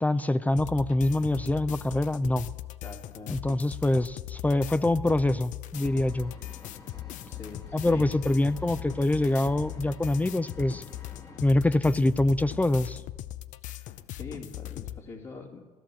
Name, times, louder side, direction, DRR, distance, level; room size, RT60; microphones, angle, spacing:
voice 1, 0.0-2.5 3.3-6.3 7.7-10.8 11.4-13.0, left 1 dB, 10° left, 15 dB, 0.4 m, -25 dB
sound 1, 0.6-15.0, left 14 dB, 75° left, 0.6 m, -39 dB
voice 2, 2.8-3.4 7.3-8.2 13.7-15.6, left 4 dB, 55° left, -4 dB, 2.5 m, -44 dB
Vehicle, 5.8-11.4, left 3 dB, 30° left, 1.4 m, -50 dB
15.5 x 11.5 x 7.7 m, 1.4 s
cardioid pair, 90°, 13 cm